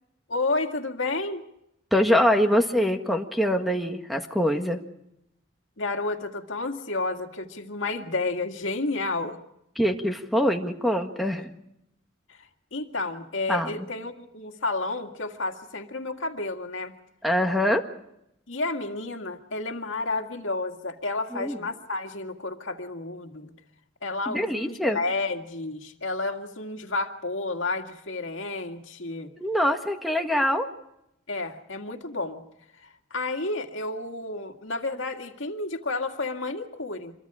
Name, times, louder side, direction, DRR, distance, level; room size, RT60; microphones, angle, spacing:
voice 1, 0.3-1.4 5.8-9.4 12.3-12.4 12.7-16.9 18.5-23.5 24.0-29.3 31.3-32.4 32.8-37.1, left 3 dB, 80° left, 4 dB, 2.1 m, -31 dB
voice 2, 1.9-4.8 9.8-11.5 13.5-13.7 17.2-17.8 21.3-21.6 24.3-25.0 29.4-30.7, equal, ahead, 4 dB, 1.6 m, -24 dB
26.5 x 23.0 x 5.0 m, 0.81 s
head